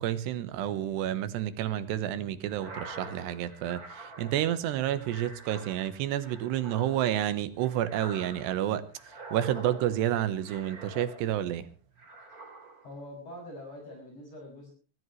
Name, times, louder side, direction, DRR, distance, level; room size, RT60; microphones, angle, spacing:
voice 1, 0.0-8.8 9.3-11.7, right 12 dB, 80° right, 3.2 m, -30 dB
sound 1, 2.5-11.6 12.0-13.0, right 2 dB, 25° right, 3.2 m, -46 dB
voice 2, 12.8-14.7, left 1 dB, 35° left, 7.7 m, -44 dB
24.5 x 14.0 x 3.2 m
omnidirectional pair, 4.9 m